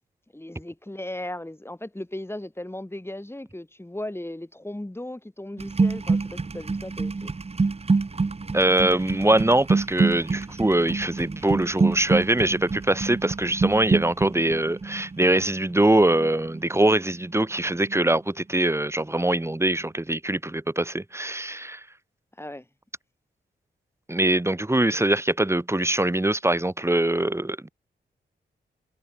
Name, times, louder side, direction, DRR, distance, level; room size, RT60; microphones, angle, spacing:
voice 1, 0.3-7.3 22.4-22.7, left 1 dB, 10° left, 5.0 m, -36 dB
sound 1, 5.6-17.5 17.7-18.1, right 4 dB, 35° right, 1.2 m, -26 dB
voice 2, 8.5-21.8 24.1-27.7, right 1 dB, 15° right, 2.3 m, -23 dB
cardioid pair, 60°, 19 cm